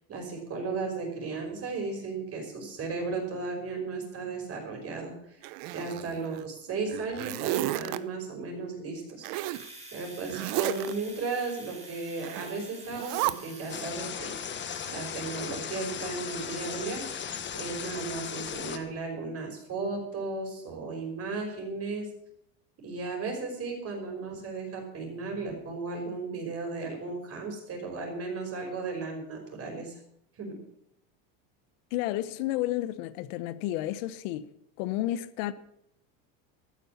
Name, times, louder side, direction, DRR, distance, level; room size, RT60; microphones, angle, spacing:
voice 1, 0.1-5.4 5.7-9.3 9.9-14.3 14.9-17.1 17.5-22.1 22.8-30.0 30.4-30.6, right 3 dB, 35° right, 5.5 m, -35 dB
Zipper (clothing), 5.4-6.4 6.9-8.0 9.2-9.7 10.3-10.9 12.2-12.5 12.9-13.3, right 16 dB, 60° right, 0.8 m, -32 dB
Domestic sounds home sounds, 9.5-17.4, right 2 dB, 15° right, 4.0 m, -49 dB
sound 1, 13.7-18.8, left 8 dB, 25° left, 1.3 m, -37 dB
voice 2, 31.9-34.5 34.8-35.5, left 14 dB, 70° left, 1.0 m, -31 dB
13.5 x 9.7 x 7.3 m
supercardioid pair, 130°, 41 cm